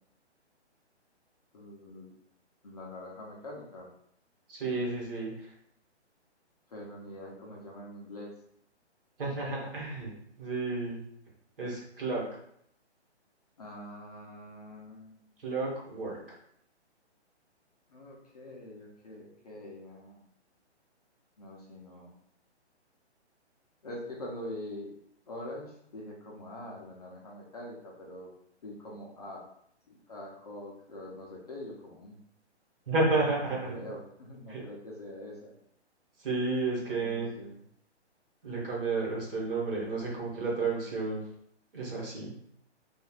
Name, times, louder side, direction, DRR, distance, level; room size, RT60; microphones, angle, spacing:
voice 1, 1.5-2.1 2.6-3.9 6.7-8.3 13.6-15.2 17.9-20.2 21.4-22.1 23.8-24.9 25.3-28.3 28.6-29.4 29.9-32.2 33.6-35.5 36.9-37.6, left 1 dB, 35° left, -3 dB, 0.5 m, -44 dB
voice 2, 4.5-5.5 9.2-10.1 10.4-11.0 11.6-12.2 15.4-16.2 32.9-33.9 34.5-34.6 36.2-37.3 38.4-41.2 41.7-42.3, right 3 dB, 50° right, -3 dB, 1.2 m, -31 dB
3.0 x 2.4 x 2.3 m, 0.69 s
hypercardioid pair, 160°, 35 cm